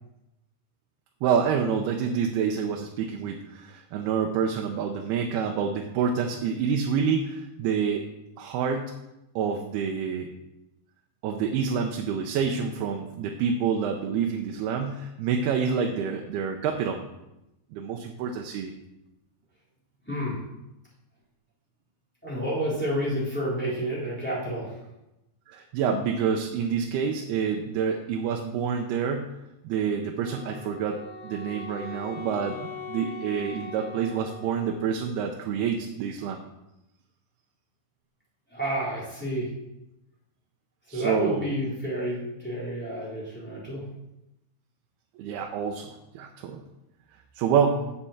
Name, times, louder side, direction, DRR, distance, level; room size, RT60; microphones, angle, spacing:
voice 1, 1.2-8.1 8.4-8.9 9.4-10.3 11.2-17.1 17.7-18.7 25.5-29.3 29.6-32.6 32.9-36.4 40.9-41.5 45.2-46.6 47.4-47.9, right 6 dB, 85° right, 3 dB, 2.8 m, -27 dB
voice 2, 20.1-20.4 22.2-24.8 38.5-39.5 40.9-43.9, equal, 5° left, -7 dB, 3.1 m, -30 dB
Wind instrument woodwind instrument, 30.2-35.0, left 5 dB, 65° left, 1.7 m, -41 dB
7.7 x 6.9 x 7.2 m, 0.93 s
omnidirectional pair, 4.4 m